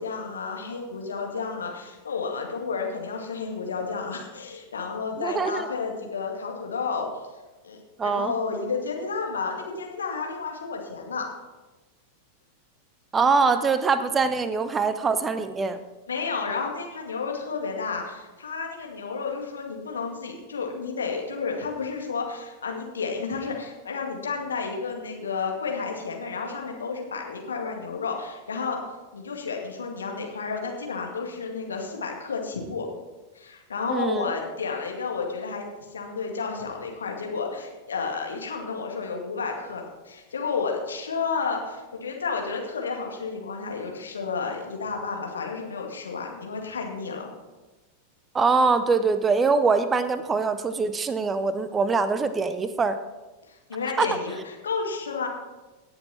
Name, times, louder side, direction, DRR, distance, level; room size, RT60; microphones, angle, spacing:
voice 1, 0.0-7.1 7.6-11.3 16.1-28.8 29.1-32.9 33.3-47.3 53.5-55.3, left 5 dB, 70° left, 1 dB, 2.1 m, -31 dB
voice 2, 5.2-5.7 8.0-8.3 13.1-15.8 33.9-34.3 48.3-53.0 54.0-54.1, right 4 dB, 20° right, 12 dB, 0.7 m, -23 dB
18.0 x 6.9 x 4.4 m, 1.2 s
figure-of-eight pair, 90°, 0 cm